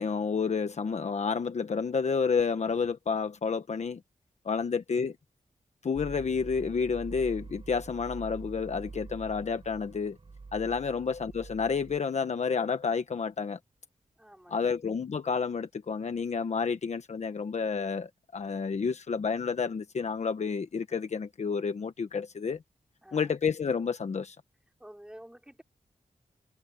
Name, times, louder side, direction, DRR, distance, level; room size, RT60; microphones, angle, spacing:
voice 1, 0.0-4.0 4.4-5.2 5.8-10.2 10.5-13.6 14.5-22.6 23.1-24.4, left 5 dB, 55° left, 1.2 m, -30 dB
sound 1, 5.9-12.0, right 4 dB, 40° right, 5.6 m, -45 dB
voice 2, 14.2-14.7 23.0-23.3 24.8-25.6, right 1 dB, 5° right, 5.6 m, -51 dB
wide cardioid pair, 140°, 14 cm